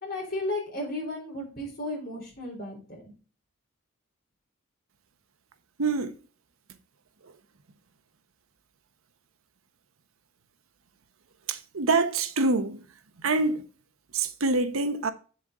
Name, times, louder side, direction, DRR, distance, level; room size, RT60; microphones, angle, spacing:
voice 1, 0.0-3.1, left 1 dB, 45° left, 4.1 m, -34 dB
voice 2, 5.8-6.1 11.5-12.8 13.2-13.6 14.1-15.1, right 3 dB, 80° right, 0.9 m, -25 dB
7.4 x 7.1 x 3.7 m
head